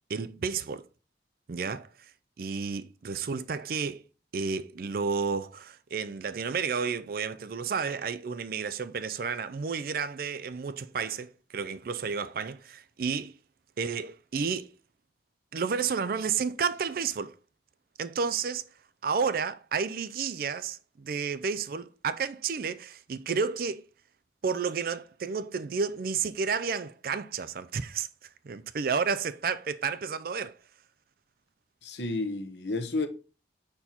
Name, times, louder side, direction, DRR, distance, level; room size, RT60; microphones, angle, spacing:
voice 1, 0.1-0.9 1.5-2.1 2.4-4.0 4.3-13.4 13.8-14.7 15.5-17.4 18.0-18.7 19.0-23.9 24.4-30.6, right 5 dB, 50° right, 0.4 m, -31 dB
voice 2, 31.8-33.1, left 2 dB, 75° left, 0.9 m, -31 dB
5.4 x 4.4 x 4.3 m
head